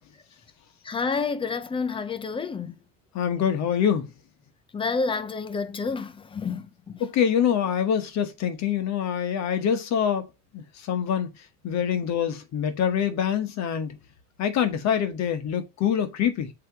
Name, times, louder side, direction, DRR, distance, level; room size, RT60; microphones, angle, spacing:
voice 1, 0.8-2.7 4.7-7.0, left 4 dB, 15° left, 0.4 m, -29 dB
voice 2, 3.1-4.1 7.0-10.3 10.5-11.3 11.6-14.0 14.4-16.5, left 8 dB, 40° left, 1.1 m, -25 dB
7.6 x 2.9 x 4.7 m
supercardioid pair, 130°, 40 cm